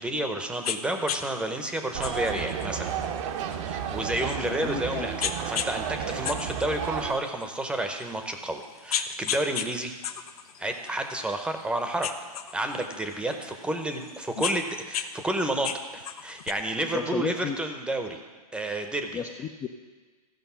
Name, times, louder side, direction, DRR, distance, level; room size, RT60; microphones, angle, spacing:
voice 1, 0.0-2.9 3.7-9.9 10.6-12.1 12.5-18.2 18.5-19.2, right 1 dB, 5° right, 5 dB, 0.9 m, -30 dB
sound 1, 0.6-0.8 1.1-1.2 2.0-4.7 5.2-5.7 6.1-7.4 8.0-8.1 8.6-9.7 10.0-11.6 12.0-13.4 14.0-15.1 15.4-16.5, left 9 dB, 70° left, 0.7 m, -33 dB
sound 2, 1.9-7.1, right 8 dB, 50° right, 0.8 m, -32 dB
voice 2, 4.4-5.1 16.9-17.6 19.1-19.7, left 7 dB, 15° left, 3 dB, 0.5 m, -33 dB
14.5 x 5.2 x 5.7 m, 1.5 s
hypercardioid pair, 125°, 20 cm